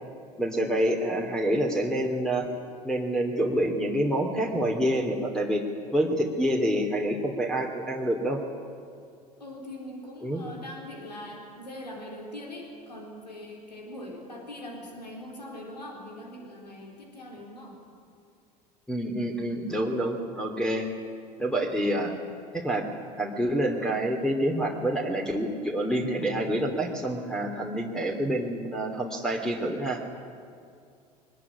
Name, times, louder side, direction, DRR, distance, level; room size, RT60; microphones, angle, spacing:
voice 1, 0.4-2.5 2.8-5.6 5.9-8.4 10.2-10.4 18.9-20.9 21.4-22.1 22.5-22.8 23.2-30.0, right 1 dB, 5° left, 2 dB, 3.0 m, -27 dB
voice 2, 9.4-17.8 21.6-22.0, left 1 dB, 85° left, 0 dB, 4.0 m, -42 dB
22.5 x 20.0 x 9.9 m, 2.4 s
figure-of-eight pair, 75°, 21 cm